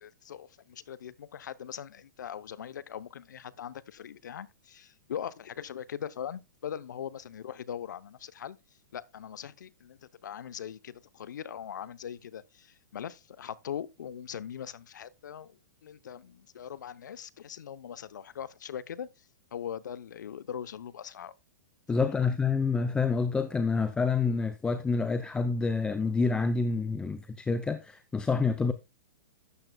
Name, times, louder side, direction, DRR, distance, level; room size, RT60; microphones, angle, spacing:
voice 1, 0.0-8.6 8.9-21.4 22.0-22.3, left 9 dB, 80° left, 0.8 m, -41 dB
voice 2, 21.9-28.7, left 4 dB, 10° left, 0.6 m, -28 dB
12.5 x 8.9 x 2.3 m
hypercardioid pair, 140°, 10 cm